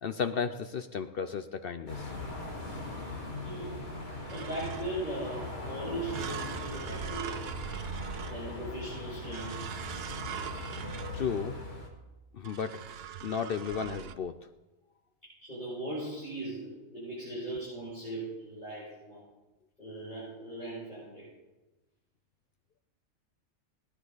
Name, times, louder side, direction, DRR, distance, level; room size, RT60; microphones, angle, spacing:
voice 1, 0.0-2.1 11.1-11.6 12.3-12.8 13.2-14.4, left 6 dB, 60° left, 10 dB, 0.6 m, -34 dB
sound 1, 1.9-11.9, left 2 dB, 85° left, 3.6 m, -40 dB
voice 2, 3.4-3.9 4.3-7.4 8.3-9.7 15.4-19.2 19.8-21.3, right 1 dB, 35° left, -10 dB, 6.2 m, -39 dB
sound 2, 4.3-5.1 6.1-8.8 9.3-11.5 12.4-14.1, right 8 dB, 60° right, 0.7 m, -41 dB
18.5 x 10.0 x 4.0 m, 1.1 s
omnidirectional pair, 1.5 m